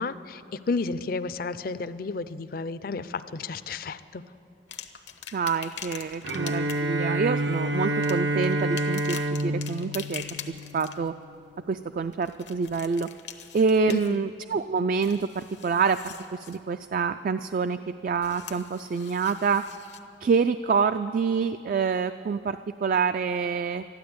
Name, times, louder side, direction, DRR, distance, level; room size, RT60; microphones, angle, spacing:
voice 1, 0.0-4.2 13.9-14.3, left 4 dB, 55° left, 13 dB, 0.5 m, -32 dB
sound 1, 4.7-6.9 7.9-11.1 12.1-14.4 14.8-16.6 18.2-20.0 20.8-20.9, left 9 dB, 80° left, 1.0 m, -43 dB
voice 2, 5.3-11.1 11.7-13.1 13.5-19.6 20.2-23.8, right 5 dB, 50° right, 10 dB, 0.3 m, -27 dB
Bowed string instrument, 6.2-11.2, right 1 dB, 85° right, 0.9 m, -28 dB
13.0 x 11.5 x 8.6 m, 2.4 s
head